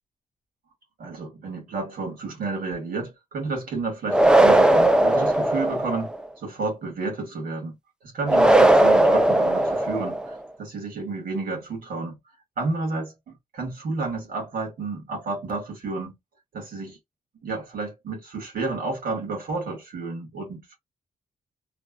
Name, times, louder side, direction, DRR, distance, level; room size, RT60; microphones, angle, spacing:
voice 1, 1.0-6.1 6.4-12.2 12.6-16.2 16.5-17.0 17.3-20.8, right 3 dB, 80° right, 2.0 m, -31 dB
sound 1, 4.1-6.2 8.3-10.3, right 1 dB, 5° right, 0.4 m, -18 dB
3.4 x 2.3 x 2.3 m
wide cardioid pair, 115°, 15 cm